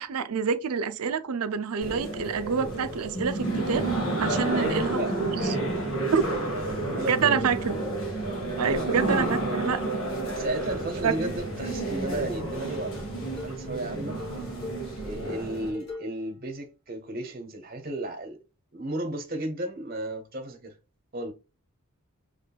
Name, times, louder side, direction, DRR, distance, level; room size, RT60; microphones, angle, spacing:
voice 1, 0.0-3.9 4.2-5.6 6.1-6.3 7.1-7.8 8.6-9.8 11.0-11.1, right 6 dB, 85° right, 0.5 m, -27 dB
sound 1, 1.8-15.7, right 2 dB, 65° left, 1.6 m, -30 dB
voice 2, 4.6-5.2 6.3-7.7 8.5-9.8 10.3-14.2 15.0-18.4 18.7-20.8 21.1-21.3, right 1 dB, 40° right, 0.9 m, -34 dB
sound 2, 9.5-16.2, left 3 dB, 45° left, 2.1 m, -44 dB
6.0 x 3.2 x 2.3 m
head